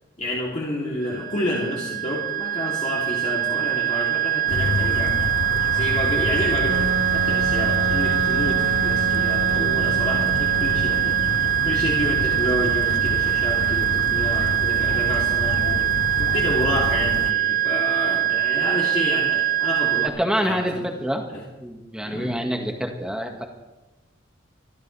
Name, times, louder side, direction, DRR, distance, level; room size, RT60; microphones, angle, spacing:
voice 1, 0.2-5.3 5.7-15.8 16.2-20.1 20.4-20.8 21.3-21.4 22.0-22.3, left 1 dB, 40° left, -6 dB, 3.3 m, -29 dB
sound 1, 1.0-20.1, right 12 dB, 45° right, 0.9 m, -23 dB
sound 2, 4.5-17.3, left 4 dB, 65° left, 0.4 m, -29 dB
Wind instrument woodwind instrument, 6.7-11.3, right 1 dB, 65° right, 1.2 m, -30 dB
voice 2, 20.2-21.2 21.6-23.4, equal, 5° right, 2 dB, 1.9 m, -26 dB
26.0 x 14.0 x 3.5 m, 1.1 s
head